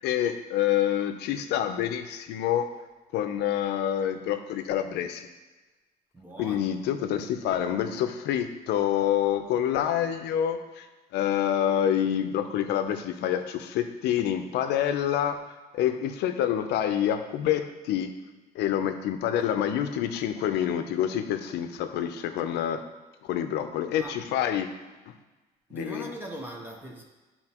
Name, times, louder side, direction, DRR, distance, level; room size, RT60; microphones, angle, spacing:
voice 1, 0.0-2.7 3.1-5.3 6.4-10.9 11.1-15.4 15.7-18.1 18.5-22.8 23.2-24.7 25.1-25.2 25.7-26.1, left 10 dB, 85° left, 8 dB, 0.6 m, -27 dB
voice 2, 6.1-6.7 24.0-24.2 25.7-27.0, right 1 dB, 10° right, -1 dB, 0.9 m, -40 dB
9.7 x 4.2 x 2.9 m, 1.2 s
cardioid pair, 110°, 17 cm